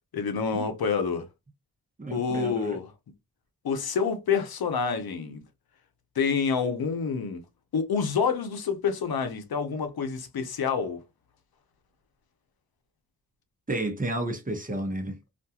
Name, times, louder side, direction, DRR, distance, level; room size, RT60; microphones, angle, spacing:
voice 1, 0.1-1.3 2.1-2.9 3.6-5.4 6.2-7.4 7.7-11.0, left 6 dB, 80° left, 0.7 m, -27 dB
voice 2, 2.0-2.8 13.7-15.2, right 1 dB, 25° right, 0.8 m, -31 dB
2.5 x 2.3 x 2.7 m
wide cardioid pair, 75°, 36 cm